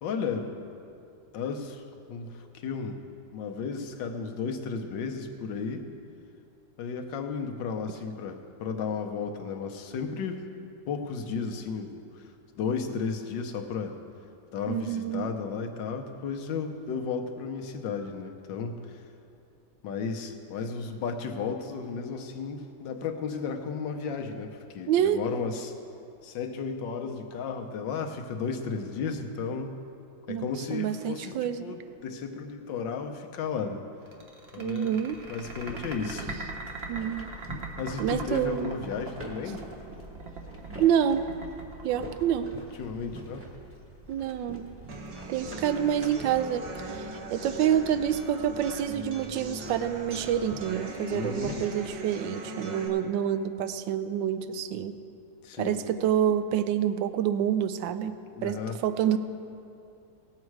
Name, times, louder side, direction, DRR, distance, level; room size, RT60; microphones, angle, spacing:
voice 1, 0.0-0.5 1.3-3.0 3.3-5.9 6.8-10.4 10.9-12.2 12.6-14.0 14.5-19.0 19.8-25.7 26.2-29.8 30.3-33.8 34.5-34.9 35.3-36.3 37.8-39.7 42.8-43.5 45.2-45.3 51.1-51.7 55.4-55.8 58.4-58.8, left 5 dB, 75° left, 5 dB, 1.5 m, -34 dB
voice 2, 14.7-15.4 24.9-25.2 30.3-31.7 34.6-35.2 36.9-37.3 38.0-38.7 40.8-41.2 41.8-42.5 44.1-44.6 45.3-55.0 55.6-59.2, right 9 dB, 75° right, 11 dB, 1.3 m, -27 dB
sound 1, 34.1-42.7, right 3 dB, 40° right, 1.2 m, -41 dB
sound 2, 35.1-51.9, right 1 dB, 10° right, 1.3 m, -45 dB
sound 3, 44.9-52.9, right 1 dB, 60° right, 1.6 m, -40 dB
18.0 x 7.5 x 4.7 m, 2.6 s
omnidirectional pair, 2.1 m